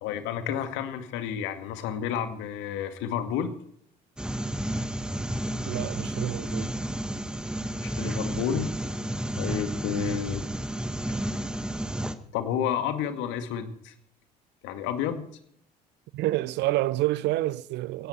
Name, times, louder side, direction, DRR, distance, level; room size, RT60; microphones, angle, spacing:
voice 1, 0.0-3.5 7.8-8.7 9.4-10.4 12.3-13.9 14.6-15.2, left 8 dB, 65° left, 2.2 m, -30 dB
sound 1, 4.2-12.2, right 1 dB, 5° right, 1.6 m, -31 dB
voice 2, 5.7-6.7 16.1-18.1, right 17 dB, 55° right, 0.7 m, -28 dB
17.5 x 17.0 x 4.5 m
figure-of-eight pair, 55°, 21 cm